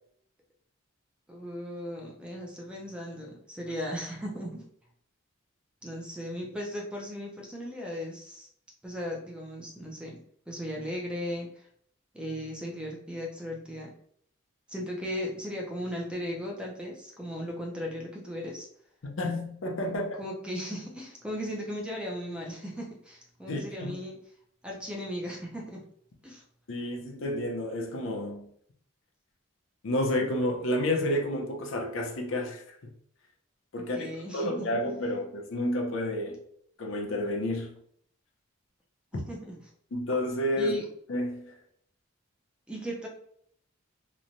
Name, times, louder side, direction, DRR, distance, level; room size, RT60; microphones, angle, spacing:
voice 1, 1.3-4.6 5.8-8.5 8.8-10.2 10.5-11.6 12.1-13.9 14.7-18.7 20.2-24.2 24.6-25.8 26.2-26.4 33.9-34.7 39.1-39.6 40.6-40.8 42.7-43.1, equal, 5° right, 0.4 m, -37 dB
voice 2, 19.2-20.2 23.5-23.9 26.7-28.5 29.8-32.9 33.7-36.4 36.8-37.8 39.9-40.8 41.1-41.6, left 1 dB, 70° left, 0.5 m, -30 dB
3.0 x 2.1 x 2.5 m
head